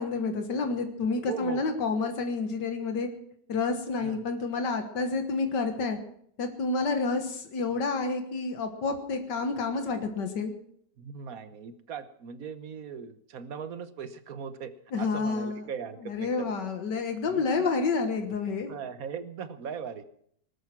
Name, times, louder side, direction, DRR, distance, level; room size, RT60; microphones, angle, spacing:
voice 1, 0.0-3.1 3.5-6.0 6.4-10.5 14.9-15.6 16.1-18.7, left 4 dB, 80° left, 6 dB, 2.0 m, -29 dB
voice 2, 1.3-1.6 4.0-4.2 11.0-14.7 15.0-16.5 17.2-17.7 18.7-20.0, right 6 dB, 60° right, 12 dB, 1.4 m, -39 dB
19.5 x 12.0 x 6.0 m, 0.67 s
omnidirectional pair, 1.8 m